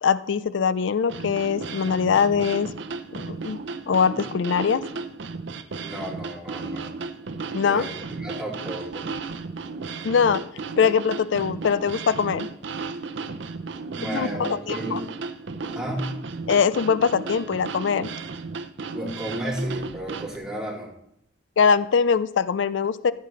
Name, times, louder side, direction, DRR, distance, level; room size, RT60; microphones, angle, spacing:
voice 1, 0.0-2.7 3.1-3.6 3.9-4.8 7.5-7.9 10.0-10.4 10.8-12.5 14.1-15.0 16.5-18.1 21.6-23.1, left 6 dB, 70° left, 16 dB, 0.4 m, -22 dB
sound 1, 1.1-20.4, right 4 dB, 65° right, 0.6 m, -34 dB
voice 2, 5.8-6.9 7.6-9.1 14.0-15.0 15.7-16.1 18.9-20.9, right 1 dB, 5° right, -7 dB, 2.8 m, -33 dB
14.5 x 8.5 x 3.2 m, 0.78 s
head